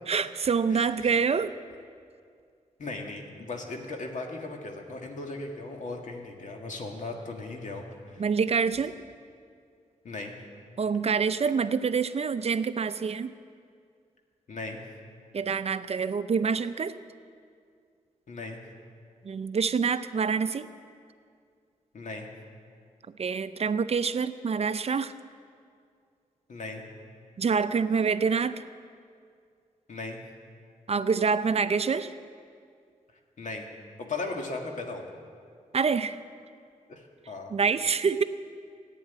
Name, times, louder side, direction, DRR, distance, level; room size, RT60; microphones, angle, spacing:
voice 1, 0.1-1.6 8.2-8.9 10.8-13.3 15.3-17.0 19.2-20.7 23.2-25.1 27.4-28.6 30.9-32.1 35.7-36.2 37.5-38.2, right 5 dB, 50° right, 12 dB, 0.5 m, -26 dB
voice 2, 0.7-1.2 2.8-8.3 10.0-10.4 14.5-14.8 18.3-18.6 21.9-22.3 26.5-26.8 29.9-30.2 33.4-33.7 34.0-35.0 36.9-37.5, left 3 dB, 65° left, 2 dB, 2.0 m, -37 dB
15.0 x 9.2 x 9.5 m, 2.2 s
wide cardioid pair, 110°, 14 cm